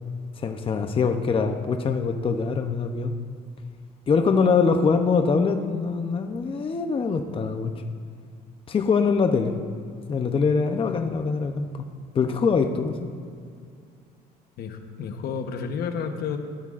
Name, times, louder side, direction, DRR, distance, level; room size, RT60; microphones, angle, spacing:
voice 1, 0.4-3.1 4.1-7.7 8.7-9.6 10.1-11.8 12.1-13.1, left 5 dB, 30° left, 6 dB, 0.7 m, -23 dB
voice 2, 14.6-16.4, left 6 dB, 70° left, 6 dB, 1.1 m, -31 dB
16.5 x 12.5 x 2.5 m, 2.3 s
cardioid pair, 110°, 17 cm